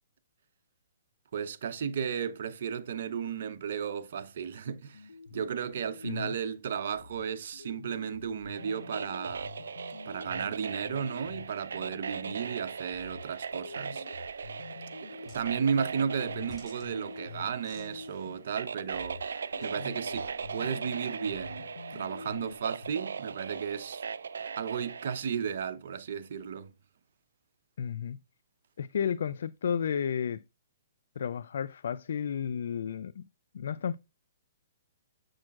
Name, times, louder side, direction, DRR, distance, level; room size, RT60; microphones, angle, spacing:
voice 1, 1.3-9.5 10.1-14.0 15.1-19.3 19.6-24.0 24.6-26.7, right 7 dB, 60° right, 0.8 m, -34 dB
sound 1, 4.9-6.5 6.9-12.5 12.9-18.5 18.9-22.9, left 4 dB, 90° left, 0.7 m, -47 dB
voice 2, 6.0-6.3 27.8-28.2 28.8-30.4 31.2-33.2 33.5-34.0, left 7 dB, 70° left, 0.3 m, -32 dB
sound 2, 8.5-25.2, right 6 dB, 85° right, 0.4 m, -39 dB
sound 3, 15.2-20.7, left 1 dB, 10° right, 4.0 m, -58 dB
7.4 x 6.3 x 2.4 m
hypercardioid pair, 145°, 0 cm